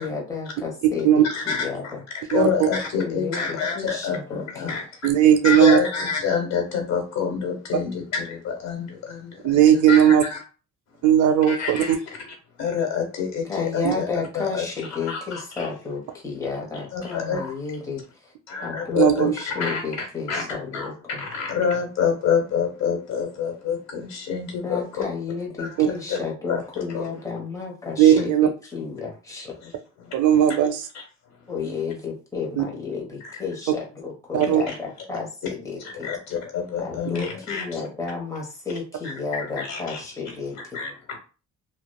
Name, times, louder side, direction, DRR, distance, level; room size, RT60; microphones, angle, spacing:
voice 1, 0.0-2.0 2.9-4.7 13.5-18.3 18.6-21.2 24.5-29.5 31.5-36.1 36.8-40.8, left 4 dB, 10° left, -2 dB, 1.0 m, -32 dB
voice 2, 1.2-1.9 2.3-4.9 5.4-9.6 9.9-10.4 11.5-11.9 12.6-15.7 16.9-17.5 18.5-20.9 21.2-24.8 25.6-26.2 26.5-27.1 28.1-28.2 29.6-29.7 30.0-30.1 33.3-33.4 34.7-34.8 36.0-37.9 39.4-40.0 40.6-40.9, left 6 dB, 60° left, 2 dB, 1.1 m, -27 dB
voice 3, 2.3-2.7 5.0-5.8 9.4-10.2 11.0-12.0 13.8-13.9 19.0-19.3 25.8-25.9 28.0-28.5 30.1-30.9 32.6-32.7 34.3-34.6, right 10 dB, 80° right, 7 dB, 0.5 m, -17 dB
2.8 x 2.2 x 2.2 m, 0.34 s
cardioid pair, 90°, 30 cm